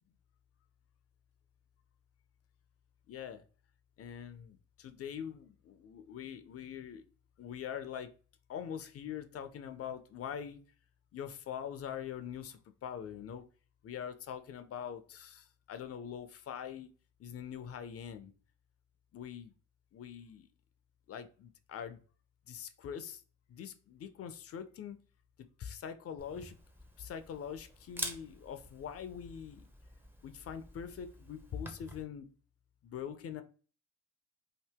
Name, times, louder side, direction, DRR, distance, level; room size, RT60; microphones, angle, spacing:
voice 1, 3.1-3.4 4.0-7.0 7.4-8.1 8.5-10.6 11.1-13.4 13.8-16.9 17.2-18.3 19.1-19.5 19.9-20.5 21.1-22.0 22.5-23.2 23.5-25.0 25.6-26.6 27.0-29.6 30.2-32.3 32.8-33.4, left 8 dB, 50° left, 10 dB, 0.5 m, -43 dB
Camera, 26.2-32.0, right 1 dB, 5° right, 0.6 m, -47 dB
2.8 x 2.6 x 3.3 m, 0.38 s
cardioid pair, 90°, 30 cm